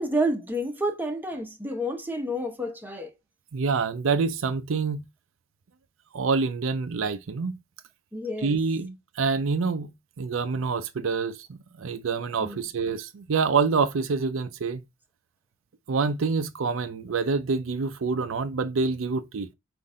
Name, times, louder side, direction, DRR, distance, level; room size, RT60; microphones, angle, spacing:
voice 1, 0.0-3.1 8.1-8.6 12.4-12.6, right 1 dB, 10° right, 0.9 m, -29 dB
voice 2, 3.5-5.0 6.1-7.6 8.4-9.9 10.2-14.8 15.9-19.5, right 4 dB, 85° right, 0.5 m, -26 dB
5.5 x 2.6 x 3.7 m
head